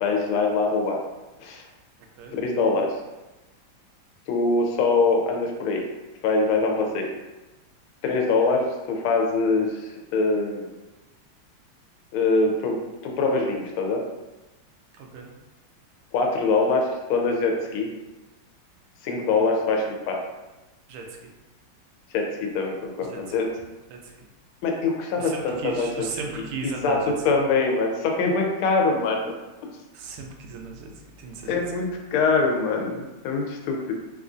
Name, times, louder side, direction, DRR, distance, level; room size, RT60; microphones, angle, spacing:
voice 1, 0.0-1.0 1.4-1.6 2.3-2.9 4.3-5.8 6.2-7.1 8.0-10.7 12.1-14.0 16.1-17.9 19.0-20.2 22.1-23.5 24.6-25.9 26.6-27.0 27.2-29.4 31.5-33.9, left 3 dB, 90° left, 1 dB, 1.5 m, -23 dB
voice 2, 14.9-15.3 20.9-21.0 23.1-23.2 23.9-24.1 25.2-27.1 29.9-30.9 31.2-31.6, right 4 dB, 85° right, 1 dB, 1.5 m, -35 dB
4.1 x 2.4 x 2.5 m, 1.1 s
omnidirectional pair, 2.3 m